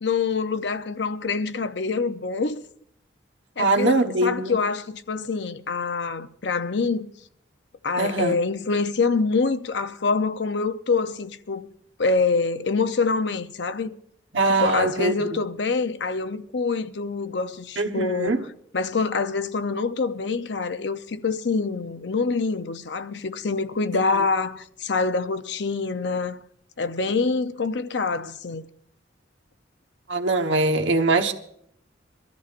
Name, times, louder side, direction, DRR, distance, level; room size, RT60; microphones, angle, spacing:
voice 1, 0.0-2.6 3.6-7.1 7.8-11.7 12.0-13.9 14.5-18.4 18.7-26.4 26.8-28.6, left 4 dB, 65° left, 0.7 m, -25 dB
voice 2, 3.6-4.5 8.0-8.4 14.3-15.1 17.8-18.4 30.1-31.3, right 2 dB, 85° right, 1.2 m, -22 dB
23.5 x 13.5 x 2.5 m
head